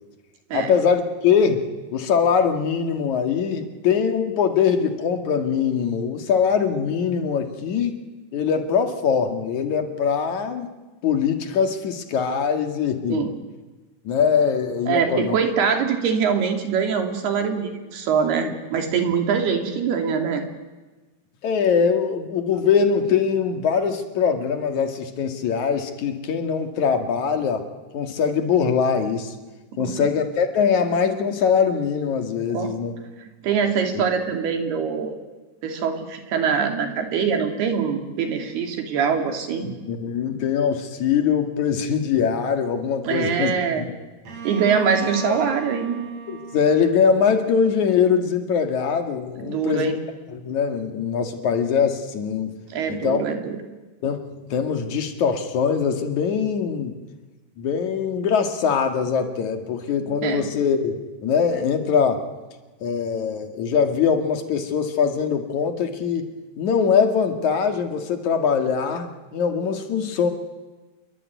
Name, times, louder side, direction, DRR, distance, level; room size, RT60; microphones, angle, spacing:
voice 1, 0.5-8.0 8.3-10.7 11.0-13.3 14.0-15.4 18.4-18.5 21.4-27.6 27.9-29.3 29.8-33.0 33.9-34.0 39.6-43.5 43.8-43.9 46.3-49.9 50.3-52.6 52.9-53.2 54.0-56.9 57.6-62.2 62.8-66.3 66.6-70.3, left 6 dB, 50° left, 6 dB, 3.2 m, -22 dB
voice 2, 14.9-20.4 29.7-30.1 32.5-32.8 33.2-35.2 35.6-39.7 43.0-43.9 44.4-46.0 49.4-50.0 52.7-53.6 60.0-60.5, right 6 dB, 75° right, 5 dB, 4.8 m, -23 dB
Bowed string instrument, 44.3-48.0, right 5 dB, 45° right, 5.0 m, -36 dB
28.0 x 22.5 x 9.4 m, 1.2 s
omnidirectional pair, 4.6 m